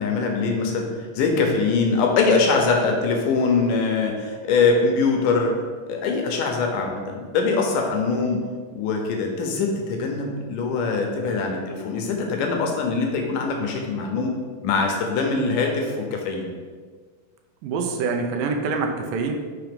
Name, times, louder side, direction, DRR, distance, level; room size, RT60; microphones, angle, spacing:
voice 1, 0.0-5.6 5.9-8.4 8.7-14.4 14.6-16.5, left 4 dB, 75° left, 2 dB, 2.2 m, -23 dB
voice 2, 17.6-19.3, right 4 dB, 85° right, 3 dB, 2.3 m, -25 dB
5.8 x 3.5 x 5.2 m, 1.5 s
omnidirectional pair, 4.0 m